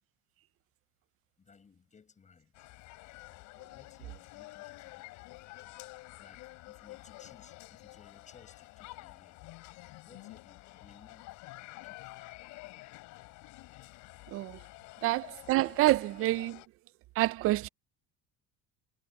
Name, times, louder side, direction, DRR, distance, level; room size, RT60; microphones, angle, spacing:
voice 1, 1.4-2.7 3.7-5.2 6.2-9.4 10.0-11.4 11.8-12.1, left 6 dB, 25° left, 5.0 m, -59 dB
sound 1, 2.5-16.7, left 21 dB, 75° left, 6.0 m, -49 dB
voice 2, 15.0-16.6 17.2-17.7, right 17 dB, 50° right, 0.4 m, -27 dB
cardioid pair, 140°, 29 cm